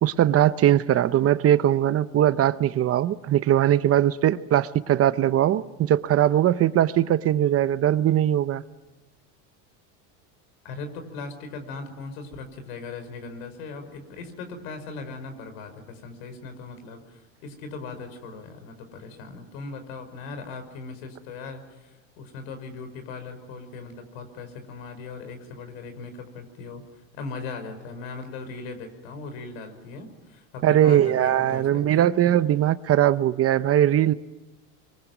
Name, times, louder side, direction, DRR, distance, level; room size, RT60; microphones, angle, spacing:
voice 1, 0.0-8.6 30.6-34.1, right 11 dB, 35° right, 0.8 m, -20 dB
voice 2, 10.6-32.1, left 4 dB, 85° left, 5.5 m, -39 dB
25.5 x 23.5 x 9.3 m
supercardioid pair, 125°, 39 cm